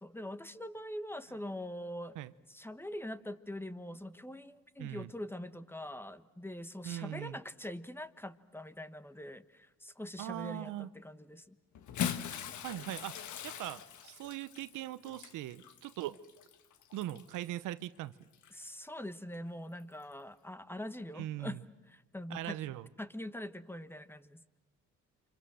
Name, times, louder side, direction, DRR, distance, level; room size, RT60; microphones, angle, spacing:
voice 1, 0.0-2.2 2.5-11.6 18.5-21.6 21.9-22.6 23.0-24.4, left 1 dB, 5° left, 13 dB, 1.2 m, -43 dB
voice 2, 4.8-5.1 6.8-7.4 10.2-10.9 12.6-13.2 13.4-16.2 16.9-18.1 21.1-21.6 22.3-22.9, right 14 dB, 90° right, 15 dB, 0.9 m, -40 dB
Bathtub (filling or washing) / Splash splatter, 11.8-17.4 18.3-18.5 19.9-20.0, left 9 dB, 75° left, 1.6 m, -41 dB
29.0 x 26.0 x 7.6 m, 1.1 s
cardioid pair, 90°, 30 cm